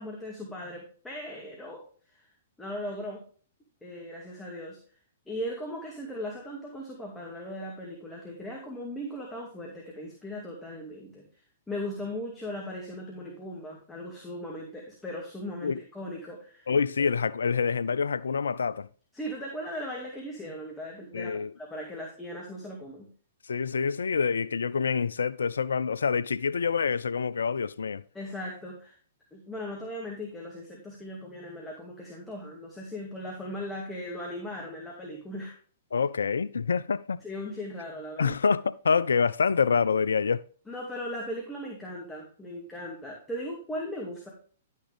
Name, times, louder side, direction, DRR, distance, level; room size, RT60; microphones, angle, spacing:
voice 1, 0.0-1.8 2.1-2.3 2.6-3.2 3.8-4.8 5.3-11.2 11.7-16.7 17.0-17.1 19.1-23.1 28.1-29.0 29.3-35.6 37.2-38.4 40.7-44.3, equal, 10° left, 2.2 m, -38 dB
voice 2, 16.7-18.9 21.1-21.5 23.5-28.0 35.9-37.2 38.2-40.4, left 5 dB, 80° left, 0.4 m, -26 dB
11.0 x 6.5 x 3.5 m
hypercardioid pair, 115°, 0 cm